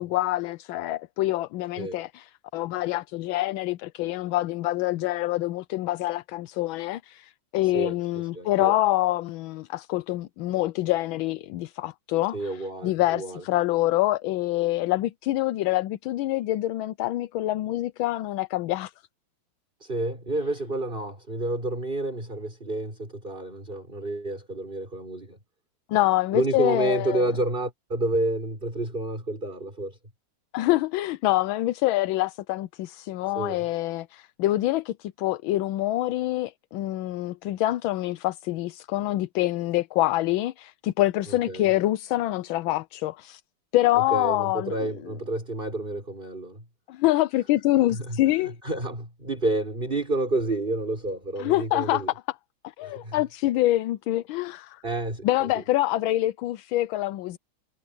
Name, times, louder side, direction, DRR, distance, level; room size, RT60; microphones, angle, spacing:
voice 1, 0.0-18.9 25.9-27.2 30.5-43.4 43.7-44.9 46.9-48.5 51.4-52.0 52.8-54.8 55.2-57.4, left 16 dB, 80° left, 1.4 m, -26 dB
voice 2, 7.6-8.8 12.3-13.4 19.8-25.4 26.3-30.0 33.3-33.6 41.3-41.7 44.1-46.6 47.9-52.1 52.8-53.2 54.8-55.6, right 2 dB, 25° right, 6.1 m, -30 dB
omnidirectional pair, 2.2 m